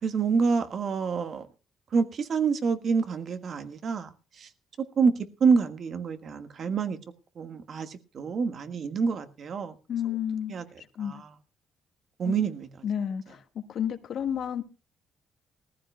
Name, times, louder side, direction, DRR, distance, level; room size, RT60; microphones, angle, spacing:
voice 1, 0.0-1.5 1.9-4.5 5.0-5.1 5.4-7.0 7.4-9.7 10.5-10.6 11.0-11.3 12.2-12.7, right 5 dB, 55° right, 1.5 m, -27 dB
voice 2, 9.9-10.5 10.9-11.2 12.2-12.3 12.8-13.4 13.7-14.6, left 9 dB, 65° left, 1.5 m, -30 dB
20.0 x 14.5 x 2.2 m
cardioid pair, 90°, 0 cm